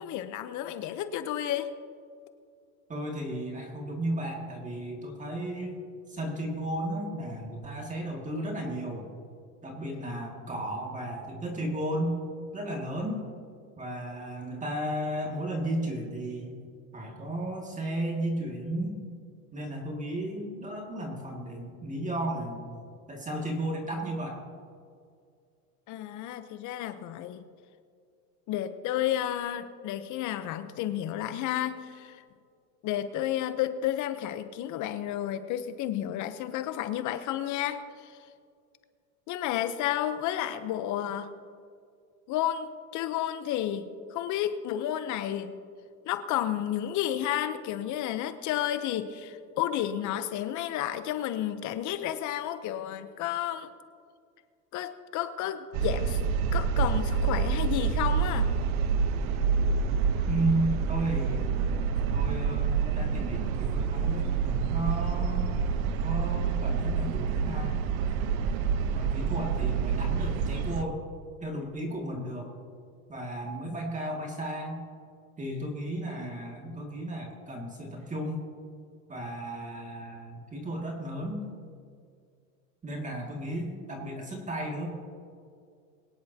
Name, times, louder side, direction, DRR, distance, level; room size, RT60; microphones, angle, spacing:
voice 1, 0.0-1.7 25.9-27.4 28.5-32.2 32.8-38.2 39.3-41.3 42.3-45.6 46.1-53.7 54.7-56.2 56.5-58.5, left 11 dB, 45° left, 11 dB, 0.8 m, -31 dB
voice 2, 2.9-5.8 6.1-9.1 9.6-12.2 12.5-13.2 13.8-16.6 16.9-19.0 19.5-22.7 23.1-24.4 60.3-61.7 62.1-64.3 64.7-65.5 66.0-67.8 68.9-71.0 71.4-72.5 73.1-74.8 75.4-78.4 79.1-81.5 82.8-84.9, right 1 dB, 15° right, 0 dB, 2.1 m, -34 dB
sound 1, 55.7-70.8, right 6 dB, 70° right, 1.0 m, -27 dB
22.5 x 10.0 x 2.8 m, 2.2 s
supercardioid pair, 125°, 43 cm